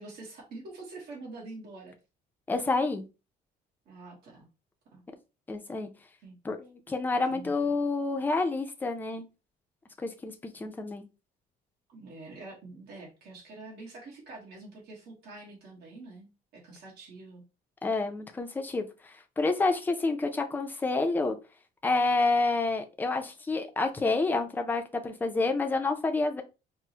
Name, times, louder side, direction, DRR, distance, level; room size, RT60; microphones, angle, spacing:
voice 1, 0.0-2.0 3.9-4.5 4.9-5.0 6.2-6.4 7.3-7.7 11.9-17.4, right 2 dB, 70° right, -3 dB, 1.2 m, -46 dB
voice 2, 2.5-3.0 5.5-5.9 6.4-9.3 10.0-11.0 17.8-18.9 19.4-21.4 21.8-26.4, left 3 dB, 10° left, 5 dB, 0.4 m, -28 dB
4.5 x 2.0 x 2.7 m, 0.29 s
cardioid pair, 165°, 17 cm